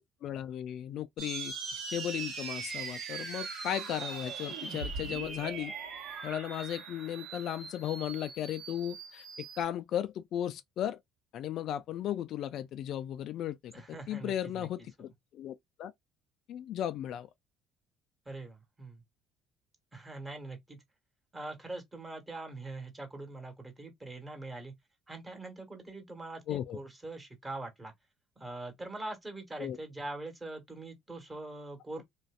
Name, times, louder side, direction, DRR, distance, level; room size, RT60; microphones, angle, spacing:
voice 1, 0.2-5.7 6.2-11.0 11.3-15.9 16.5-17.3 26.5-26.8 29.6-29.8, left 11 dB, 65° left, 0.3 m, -36 dB
sound 1, 1.2-9.6, right 5 dB, 65° right, 1.1 m, -40 dB
voice 2, 13.7-14.7 18.2-19.0 19.9-20.8 21.3-24.7 25.1-27.9 28.4-32.0, right 2 dB, 20° right, 1.3 m, -43 dB
2.5 x 2.2 x 2.3 m
supercardioid pair, 70°, 0 cm